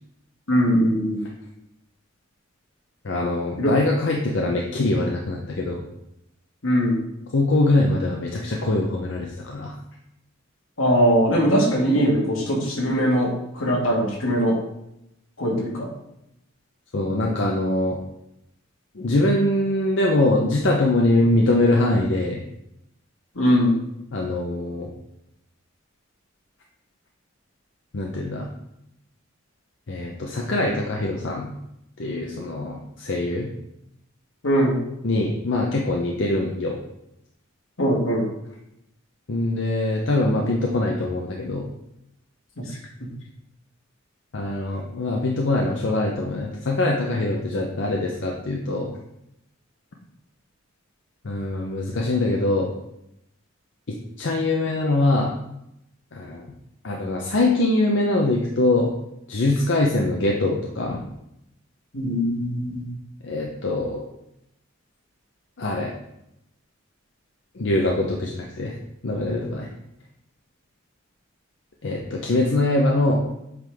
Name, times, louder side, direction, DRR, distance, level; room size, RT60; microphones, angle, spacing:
voice 1, 0.5-1.2 3.6-3.7 6.6-7.0 10.8-13.3 13.5-14.5 15.4-15.9 23.3-23.7 34.4-34.8 37.8-38.2 61.9-62.9, equal, 80° left, -2 dB, 1.6 m, -20 dB
voice 2, 3.0-5.8 7.3-9.7 16.9-18.0 19.0-22.4 24.1-24.9 27.9-28.5 29.9-31.5 32.0-33.5 35.0-36.8 39.3-41.7 44.3-48.9 51.2-52.7 53.9-55.3 56.1-56.5 56.8-58.9 59.3-61.0 63.2-64.0 65.6-65.9 67.6-68.8 69.0-69.7 71.8-73.2, left 2 dB, 60° left, 0 dB, 0.6 m, -23 dB
7.8 x 3.8 x 3.4 m, 0.83 s
head